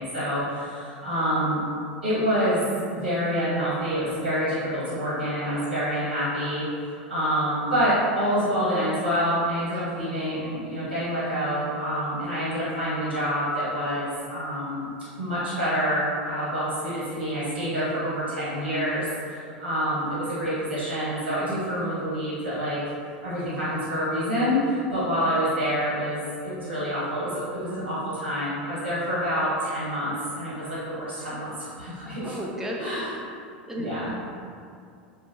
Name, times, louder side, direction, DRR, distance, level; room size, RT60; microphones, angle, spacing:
voice 1, 0.0-1.6 2.0-2.6 2.9-14.9 15.2-22.8 23.2-32.4 32.8-33.1 33.7-34.1, equal, 85° right, -11 dB, 1.3 m, -27 dB
voice 2, 32.2-33.0 33.7-33.9, equal, 10° right, -3 dB, 0.4 m, -33 dB
2.5 x 2.4 x 2.6 m, 2.4 s
hypercardioid pair, 85°, 6 cm